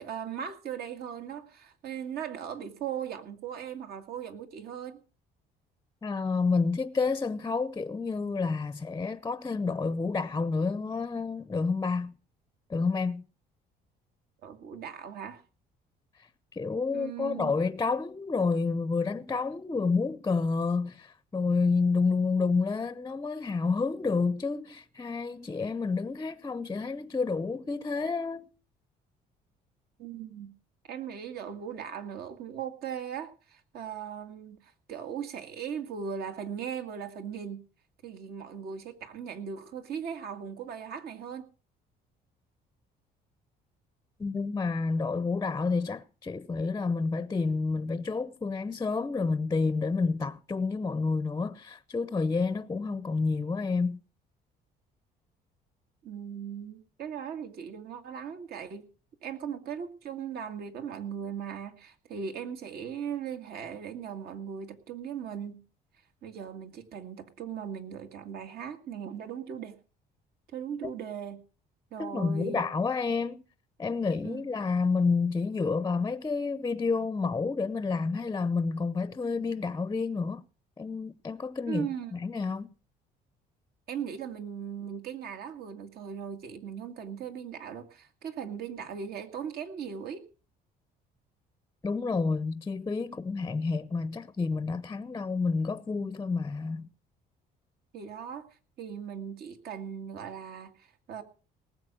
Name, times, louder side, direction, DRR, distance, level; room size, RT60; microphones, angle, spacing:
voice 1, 0.0-5.0 14.4-15.4 16.9-17.6 30.0-30.5 30.9-37.6 38.0-41.5 56.0-58.8 59.2-65.6 66.2-69.8 70.5-71.4 71.9-72.6 74.2-74.5 81.7-82.1 83.9-90.2 97.9-98.5 98.8-101.2, right 7 dB, 65° right, 2.1 m, -38 dB
voice 2, 6.0-12.1 12.7-13.3 16.5-28.5 44.2-54.0 72.0-73.4 73.8-80.4 80.8-82.7 91.8-96.9, left 4 dB, 20° left, 0.6 m, -29 dB
19.0 x 8.0 x 6.2 m
cardioid pair, 110°, 17 cm